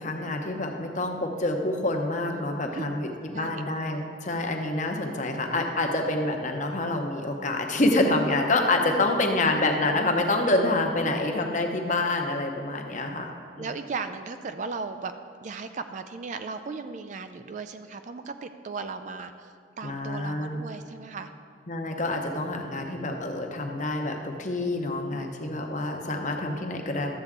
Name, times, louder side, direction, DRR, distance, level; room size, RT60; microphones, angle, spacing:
voice 1, 0.0-13.7 19.8-20.6 21.7-27.1, left 2 dB, 40° left, 3 dB, 0.8 m, -27 dB
voice 2, 2.3-2.9 3.3-3.6 8.7-9.6 11.0-11.4 13.6-15.1 15.4-21.3 24.7-25.3, right 4 dB, 40° right, 8 dB, 0.3 m, -37 dB
12.0 x 7.8 x 3.6 m, 2.2 s
head